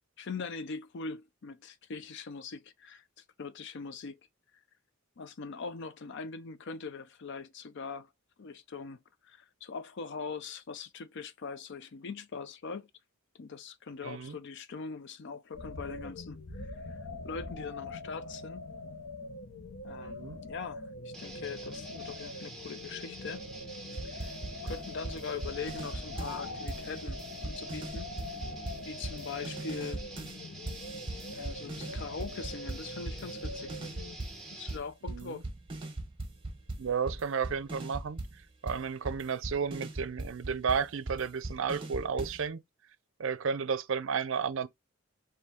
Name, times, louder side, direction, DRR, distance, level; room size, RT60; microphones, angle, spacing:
voice 1, 0.2-4.2 5.2-8.1 8.4-12.9 13.4-17.0 17.2-18.6 19.8-23.4 24.0-24.3 24.6-28.1 28.8-30.0 31.3-33.7 34.5-35.4, left 5 dB, 55° left, 0.5 m, -42 dB
voice 2, 14.0-14.4 20.0-20.4 35.1-35.4 36.8-42.6 43.2-44.7, right 6 dB, 60° right, 0.5 m, -33 dB
sound 1, 15.5-34.2, left 2 dB, 75° left, 1.0 m, -43 dB
sound 2, 21.1-34.9, right 2 dB, ahead, 1.1 m, -47 dB
sound 3, 23.9-26.4 26.7-30.4 30.6-34.4 34.7-42.5, right 2 dB, 25° right, 1.0 m, -39 dB
4.4 x 2.7 x 3.6 m
head